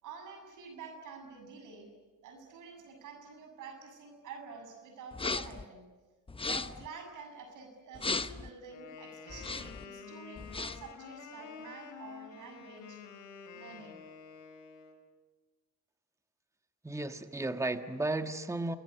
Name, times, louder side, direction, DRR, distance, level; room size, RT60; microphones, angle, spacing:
voice 1, 0.0-1.9 2.2-5.9 6.4-13.0 13.5-14.0, right 5 dB, 85° right, 6 dB, 7.4 m, -48 dB
sound 1, 5.1-5.6 6.3-6.9 7.9-8.5 9.3-9.8 10.4-10.9, left 3 dB, 20° left, 0.9 m, -36 dB
Wind instrument woodwind instrument, 8.7-15.0, left 6 dB, 80° left, 5.2 m, -49 dB
voice 2, 16.8-18.8, right 2 dB, 10° right, 8 dB, 1.5 m, -34 dB
28.0 x 21.0 x 9.7 m, 1.3 s
cardioid pair, 90°, 30 cm